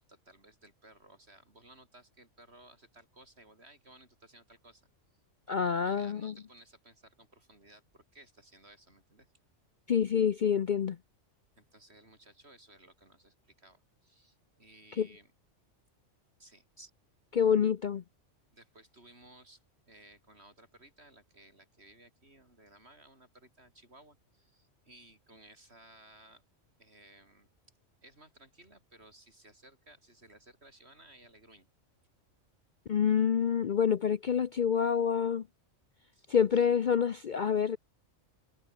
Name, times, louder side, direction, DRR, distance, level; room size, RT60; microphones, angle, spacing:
voice 1, 0.0-4.9 5.5-9.3 11.6-15.3 16.4-16.7 18.5-26.4 26.8-27.5 28.0-31.7 36.1-36.3, right 1 dB, 55° right, 6.5 m, -58 dB
voice 2, 5.5-6.3 9.9-11.0 15.0-15.1 17.3-18.0 32.9-35.4 36.3-37.8, left 7 dB, 50° left, 0.7 m, -27 dB
omnidirectional pair, 1.3 m